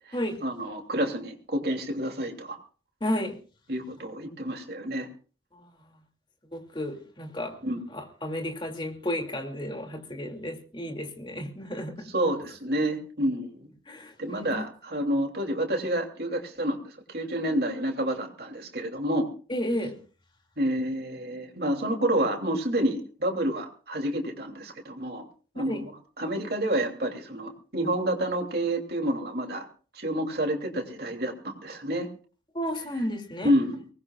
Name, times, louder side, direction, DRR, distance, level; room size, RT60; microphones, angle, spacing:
voice 1, 0.1-2.6 3.7-5.1 7.6-7.8 12.1-13.7 14.2-19.3 20.6-25.3 25.5-25.9 26.2-29.6 29.9-32.1 33.4-33.8, right 1 dB, 55° right, 3 dB, 3.1 m, -29 dB
voice 2, 3.0-3.4 5.5-5.7 6.5-7.6 7.9-12.1 13.9-14.7 19.5-20.0 25.5-25.8 32.5-33.5, left 1 dB, 25° left, 3 dB, 2.6 m, -32 dB
23.5 x 19.5 x 2.4 m, 0.39 s
head